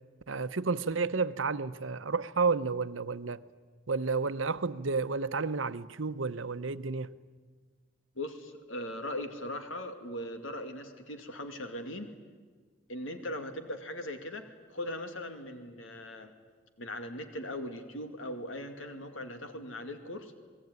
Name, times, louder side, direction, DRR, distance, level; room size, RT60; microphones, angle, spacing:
voice 1, 0.3-3.4 3.9-7.1, right 4 dB, 80° right, 0.9 m, -31 dB
voice 2, 8.2-12.1 12.9-16.3 16.8-20.3, left 1 dB, 80° left, 2.4 m, -39 dB
28.0 x 20.0 x 9.6 m
head